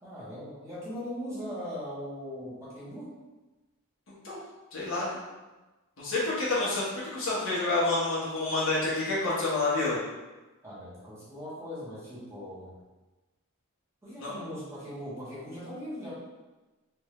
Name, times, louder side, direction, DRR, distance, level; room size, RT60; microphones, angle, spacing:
voice 1, 0.0-3.1 10.6-12.7 14.0-16.1, equal, 15° right, -10 dB, 1.2 m, -39 dB
voice 2, 4.7-5.2 6.0-6.8 7.1-10.0 14.2-14.3, left 2 dB, 65° left, -7 dB, 1.3 m, -28 dB
3.4 x 2.7 x 3.1 m, 1.1 s
head